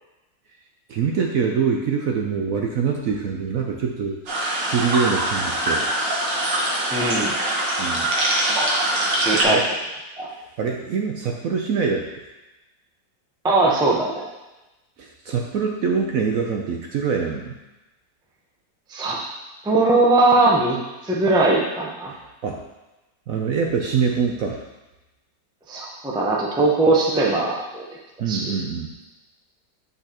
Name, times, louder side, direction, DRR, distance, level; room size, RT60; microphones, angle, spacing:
voice 1, 0.9-4.2 4.6-5.9 7.8-8.1 9.5-9.7 10.6-12.1 15.0-17.5 22.4-22.6 23.3-24.6 28.2-28.9, right 6 dB, 65° right, 1 dB, 0.9 m, -24 dB
sound 1, 4.3-9.4, right 1 dB, 85° right, 1.9 m, -23 dB
voice 2, 6.9-7.3 8.4-8.7 9.1-9.6 10.2-10.3 13.4-14.3 18.9-19.2 19.6-22.1 25.7-27.8 28.3-28.5, right 2 dB, 5° right, -3 dB, 0.4 m, -20 dB
8.2 x 5.5 x 2.9 m, 1.0 s
omnidirectional pair, 1.9 m